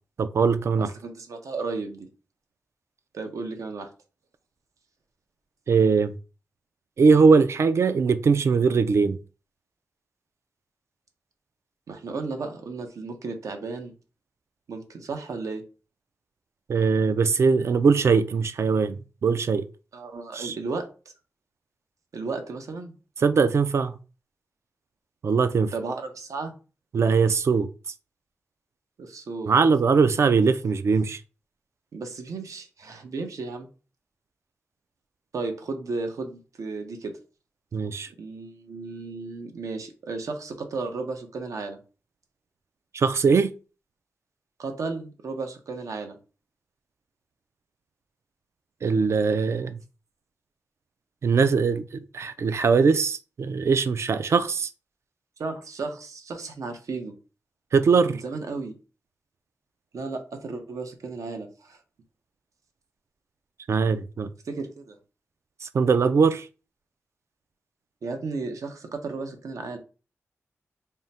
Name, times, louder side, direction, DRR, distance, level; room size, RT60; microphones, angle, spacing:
voice 1, 0.2-0.9 5.7-6.2 7.0-9.2 16.7-19.7 20.3-20.5 23.2-23.9 25.2-25.7 26.9-27.7 29.5-31.2 37.7-38.1 42.9-43.5 48.8-49.8 51.2-54.7 57.7-58.2 63.7-64.3 65.6-66.5, right 5 dB, 55° right, 0.3 m, -21 dB
voice 2, 0.8-2.1 3.1-3.9 11.9-13.9 14.7-15.6 19.9-20.9 22.1-22.9 25.7-26.5 29.0-29.5 31.9-33.7 35.3-37.2 38.1-41.8 44.6-46.2 55.4-57.2 58.1-58.8 59.9-61.8 64.4-65.0 68.0-69.8, right 3 dB, 80° right, 0.7 m, -34 dB
3.6 x 2.1 x 4.1 m
wide cardioid pair, 145°, 5 cm